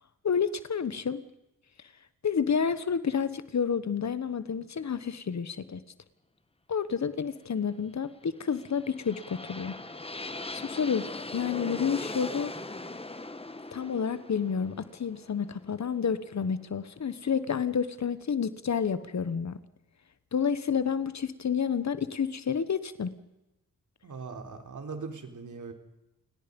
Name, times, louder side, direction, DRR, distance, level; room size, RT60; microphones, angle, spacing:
voice 1, 0.2-1.2 2.2-5.8 6.7-9.8 10.2-12.5 13.7-19.6 20.3-23.1, left 6 dB, 50° left, 14 dB, 1.3 m, -30 dB
sound 1, 8.4-16.3, left 2 dB, 15° left, 1.6 m, -40 dB
voice 2, 24.0-25.7, right 4 dB, 55° right, 5 dB, 3.9 m, -40 dB
28.5 x 19.0 x 5.4 m, 0.97 s
cardioid pair, 80°, 36 cm